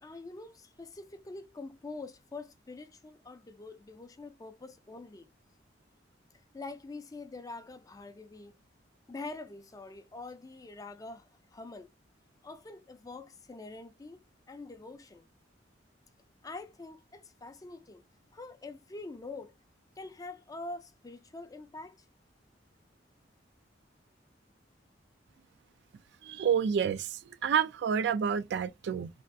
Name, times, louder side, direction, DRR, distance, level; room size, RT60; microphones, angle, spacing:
voice 1, 0.0-5.3 6.5-8.6 9.1-11.9 12.4-15.3 16.4-18.0 18.3-19.5 20.0-22.1, left 3 dB, 20° left, 0.4 m, -45 dB
voice 2, 26.2-29.1, right 7 dB, 65° right, 0.3 m, -29 dB
3.3 x 2.4 x 2.6 m
head